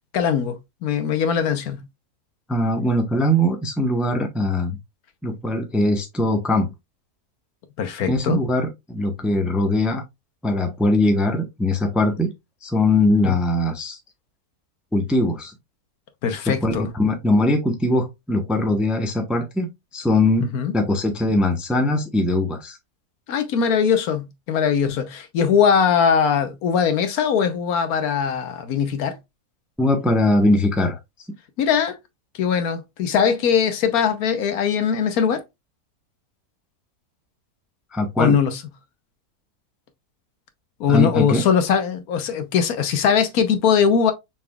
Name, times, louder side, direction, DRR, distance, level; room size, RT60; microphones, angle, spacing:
voice 1, 0.1-0.6 0.8-1.8 7.8-8.4 13.2-13.4 16.2-16.9 20.4-20.7 23.3-29.2 31.6-32.0 32.3-35.4 38.2-38.6 40.8-44.1, left 7 dB, 75° left, 1.2 m, -20 dB
voice 2, 2.5-4.8 5.2-6.7 8.1-10.0 10.4-12.3 12.6-14.0 14.9-15.5 16.5-22.8 29.8-31.0 37.9-38.4 40.9-41.4, left 1 dB, ahead, 0.6 m, -21 dB
5.8 x 3.5 x 2.3 m
omnidirectional pair, 1.6 m